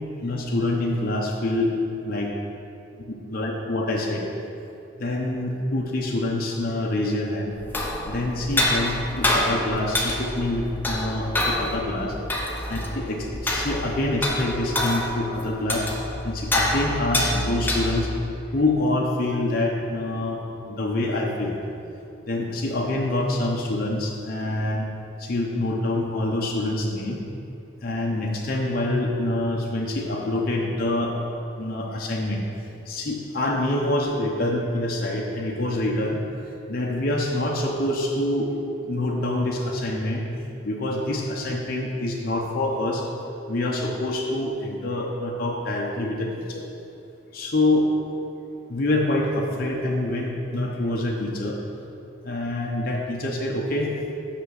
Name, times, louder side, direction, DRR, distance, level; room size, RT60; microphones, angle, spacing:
voice 1, 0.2-1.7 2.0-2.3 3.1-4.2 5.0-7.5 8.0-12.1 12.7-15.9 16.2-18.1 18.5-20.4 20.7-21.5 22.3-24.8 25.2-27.2 27.8-31.2 31.6-32.4 32.9-36.2 36.7-38.5 38.9-40.3 40.6-43.0 43.5-46.6 47.3-47.9 48.7-51.6 52.2-53.9, left 1 dB, 45° left, -2 dB, 0.7 m, -26 dB
sound 1, 7.5-18.2, left 1 dB, 10° left, 0.6 m, -27 dB
6.0 x 5.8 x 6.4 m, 2.7 s
head